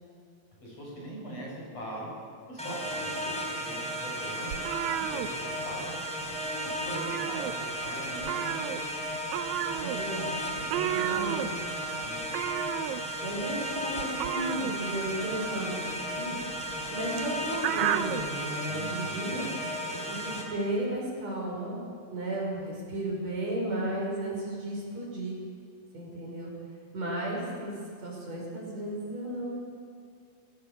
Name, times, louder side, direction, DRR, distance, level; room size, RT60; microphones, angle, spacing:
voice 1, 0.6-2.1 2.5-4.6 5.0-5.9 6.6-8.8 10.6-11.5 12.0-12.3 18.7-19.5, right 1 dB, 55° left, -4 dB, 8.3 m, -42 dB
sound 1, 2.6-20.4, right 1 dB, ahead, 3.4 m, -34 dB
sound 2, 4.5-6.0 6.2-6.5 6.8-7.9 8.2-18.3, right 12 dB, 75° right, 2.0 m, -33 dB
voice 2, 9.8-10.5 10.9-11.6 13.2-19.5 19.9-21.8 22.1-25.4 25.9-26.5 26.9-27.7 28.0-29.5, right 1 dB, 60° right, -2 dB, 6.9 m, -34 dB
27.5 x 16.5 x 7.3 m, 2.2 s
omnidirectional pair, 3.4 m